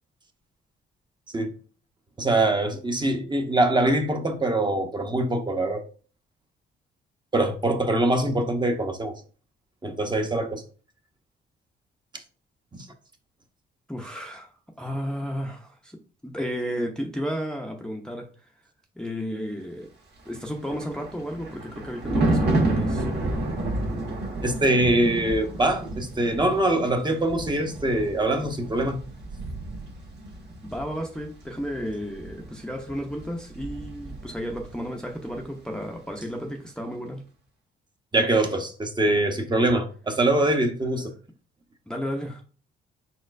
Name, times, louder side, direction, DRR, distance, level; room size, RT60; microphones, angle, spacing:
voice 1, 2.2-5.8 7.3-9.1 9.8-10.6 12.7-12.9 24.4-29.0 38.1-41.1, right 1 dB, 20° right, 0.9 m, -23 dB
voice 2, 13.9-14.5 14.8-18.3 19.0-19.9 20.3-23.0 30.6-37.2 41.9-42.4, equal, 5° left, 0.6 m, -33 dB
Thunder, 20.3-34.8 35.1-35.4, right 2 dB, 60° right, 1.5 m, -31 dB
4.3 x 4.3 x 2.5 m
cardioid pair, 90°, 20 cm